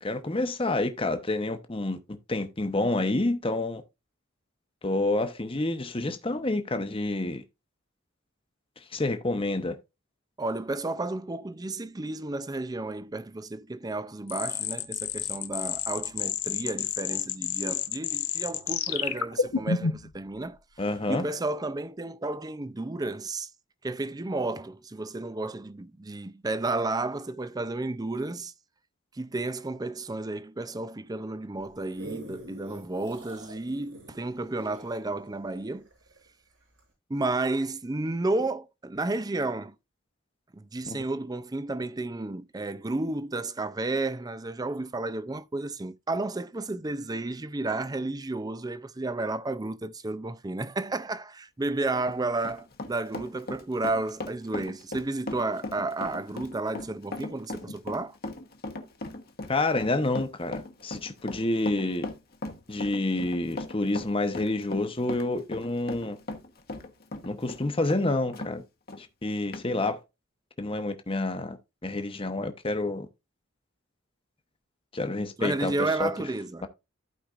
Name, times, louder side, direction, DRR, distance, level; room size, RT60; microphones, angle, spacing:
voice 1, 0.0-2.0 2.3-3.8 4.8-7.4 8.9-9.8 20.8-21.2 40.9-41.0 59.5-62.1 62.7-66.2 67.2-68.6 69.0-70.0 70.6-73.1 74.9-75.7 76.0-76.1, left 2 dB, 25° left, 0.9 m, -28 dB
voice 2, 10.4-20.6 21.1-23.5 23.8-28.5 29.1-35.9 37.1-39.8 40.5-58.2 75.4-76.6, right 2 dB, 20° right, 0.4 m, -32 dB
sound 1, 14.3-20.1, left 8 dB, 80° left, 1.0 m, -30 dB
sound 2, 31.6-36.3 36.8-36.9, right 2 dB, 85° right, 6.1 m, -45 dB
Run, 51.9-68.5 68.9-69.0 69.5-69.7, left 2 dB, 45° left, 1.1 m, -38 dB
14.5 x 5.0 x 2.4 m
head